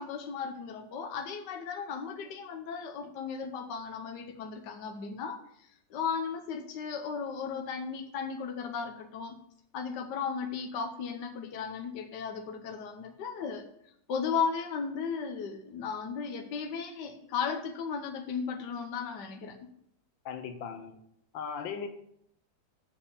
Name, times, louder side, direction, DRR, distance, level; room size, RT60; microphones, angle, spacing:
voice 1, 0.0-9.3 9.7-19.6, left 6 dB, 65° left, 5 dB, 1.5 m, -35 dB
voice 2, 20.2-20.9 21.3-21.9, left 6 dB, 85° left, 8 dB, 1.7 m, -37 dB
7.5 x 7.0 x 6.9 m, 0.72 s
omnidirectional pair, 2.0 m